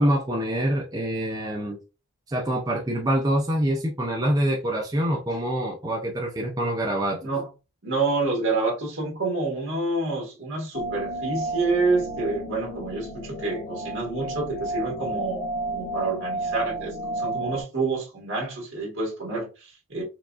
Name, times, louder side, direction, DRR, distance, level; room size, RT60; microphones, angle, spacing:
voice 1, 0.0-1.8 2.3-7.2, right 1 dB, 15° right, 0.4 m, -25 dB
voice 2, 7.8-20.0, right 3 dB, 60° right, 1.5 m, -28 dB
sound 1, 10.7-17.6, right 2 dB, 75° left, 0.8 m, -32 dB
4.6 x 2.3 x 2.4 m
head